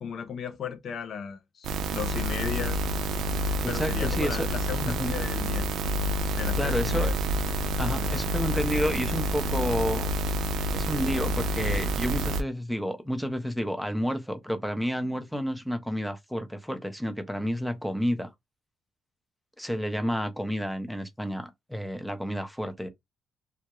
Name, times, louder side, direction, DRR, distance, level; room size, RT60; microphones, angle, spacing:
voice 1, 0.0-2.8 3.7-5.7 6.3-7.2 7.8-8.1, left 7 dB, 60° left, 0.4 m, -36 dB
sound 1, 1.6-12.4, right 1 dB, 70° right, 0.4 m, -28 dB
voice 2, 3.6-4.5 4.9-5.2 6.6-7.1 7.8-10.1 10.7-18.3 19.6-22.9, equal, ahead, 0.6 m, -30 dB
2.3 x 2.1 x 2.9 m
cardioid pair, 90°, 0 cm